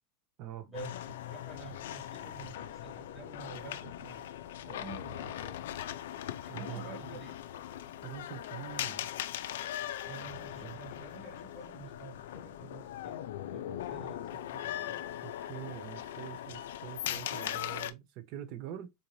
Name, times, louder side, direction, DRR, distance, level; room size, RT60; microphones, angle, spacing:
sound 1, 0.7-17.9, left 11 dB, 90° left, 0.3 m, -40 dB
voice 1, 0.7-4.2 4.6-5.6 6.4-7.4 10.0-13.2 13.5-15.1, right 4 dB, 5° right, 1.2 m, -49 dB
voice 2, 6.5-6.9 8.0-9.1 10.6-10.8 15.2-18.9, right 12 dB, 40° right, 0.5 m, -44 dB
3.9 x 2.6 x 3.0 m
supercardioid pair, 175°, 0 cm